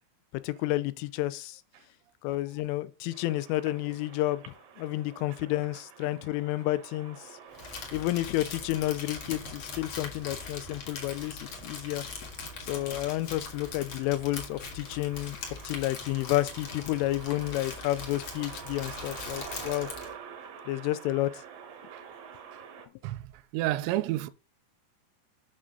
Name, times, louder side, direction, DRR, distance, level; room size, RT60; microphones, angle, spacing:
voice 1, 0.4-1.6 2.2-7.2 7.9-12.0 12.6-15.4 15.6-19.9 20.7-21.4, left 16 dB, 90° left, 3.2 m, -30 dB
sound 1, 3.1-22.9, right 7 dB, 65° right, 2.3 m, -48 dB
Crumpling crinkling, 7.5-20.1, left 4 dB, 55° left, 1.9 m, -41 dB
voice 2, 23.0-24.3, right 15 dB, 85° right, 2.6 m, -32 dB
8.7 x 6.3 x 3.8 m
omnidirectional pair, 5.6 m